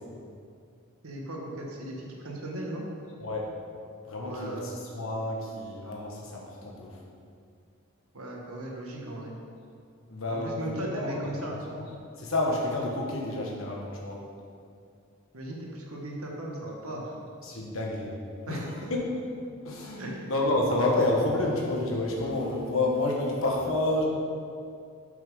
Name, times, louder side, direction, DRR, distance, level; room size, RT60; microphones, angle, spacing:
voice 1, 1.0-2.9 4.2-4.7 8.1-9.3 10.3-11.6 15.3-17.1 18.5-18.7 20.0-20.3, right 1 dB, 80° right, -1 dB, 1.3 m, -37 dB
voice 2, 4.0-6.9 10.1-11.8 12.2-14.2 17.4-18.2 18.5-18.6 18.9-19.0 19.6-24.0, left 2 dB, 70° left, -1 dB, 1.3 m, -29 dB
6.4 x 5.7 x 5.4 m, 2.4 s
head